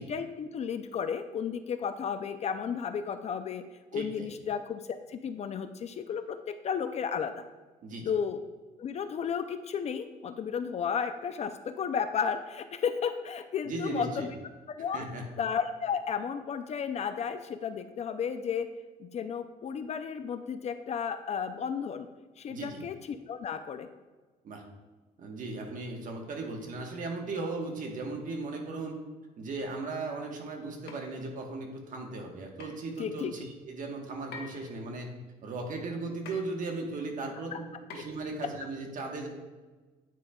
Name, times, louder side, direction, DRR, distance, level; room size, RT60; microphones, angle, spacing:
voice 1, 0.0-3.6 3.9-7.4 8.1-8.4 8.8-14.3 14.7-15.0 15.4-18.7 19.0-22.1 22.4-23.9 33.0-33.3, left 7 dB, 40° left, 9 dB, 0.4 m, -33 dB
voice 2, 3.9-4.3 7.8-8.1 13.6-14.3 14.9-15.2 22.5-22.8 24.4-24.6 25.2-29.0 29.4-35.1 35.4-37.6 37.9-39.3, right 3 dB, 50° right, 2 dB, 1.2 m, -37 dB
sound 1, 30.9-31.1 32.6-32.8 34.3-34.7 36.2-36.5 37.9-38.3, left 4 dB, 75° left, 1.1 m, -44 dB
9.3 x 5.0 x 2.3 m, 1.3 s
cardioid pair, 110°, 17 cm